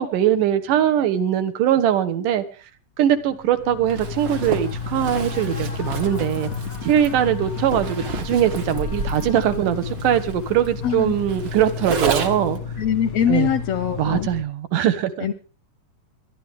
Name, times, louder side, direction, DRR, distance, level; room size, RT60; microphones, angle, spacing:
voice 1, 0.0-2.4 3.0-6.5 6.8-12.6 13.3-13.5 14.0-15.3, right 10 dB, 75° right, 2.7 m, -21 dB
sound 1, 3.2-14.4, left 5 dB, 45° left, 1.1 m, -32 dB
Zipper (clothing), 3.9-12.6, right 4 dB, 45° right, 1.6 m, -31 dB
voice 2, 10.8-11.1 12.8-14.3 15.2-15.3, left 9 dB, 70° left, 1.6 m, -22 dB
22.5 x 11.5 x 3.6 m
omnidirectional pair, 3.8 m